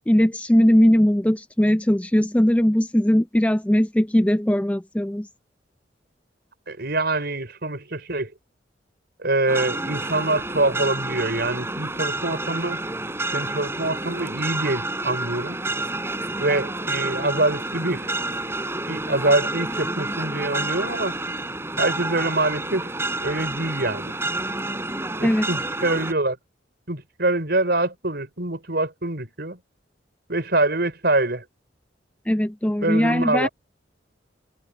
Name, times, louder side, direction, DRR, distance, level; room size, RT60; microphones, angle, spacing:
voice 1, 0.1-5.3 25.2-25.5 32.3-33.5, equal, 5° left, 0.4 m, -19 dB
voice 2, 6.7-8.3 9.2-12.8 13.3-15.6 16.4-18.1 18.9-21.2 21.8-23.0 23.2-24.1 25.2-26.4 26.9-29.6 30.3-31.4 32.8-33.5, right 2 dB, 60° right, 5.3 m, -25 dB
sound 1, 9.5-26.1, right 2 dB, 15° right, 6.3 m, -29 dB
head